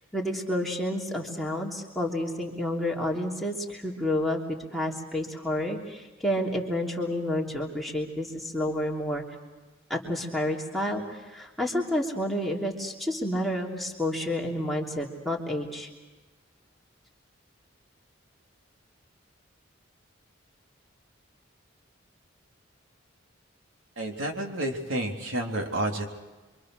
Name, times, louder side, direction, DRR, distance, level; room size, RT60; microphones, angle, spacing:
voice 1, 0.1-9.2 9.9-15.9, left 1 dB, ahead, -2 dB, 3.2 m, -30 dB
voice 2, 24.0-26.1, right 1 dB, 85° right, 2 dB, 3.8 m, -30 dB
28.0 x 25.0 x 6.6 m, 1.2 s
head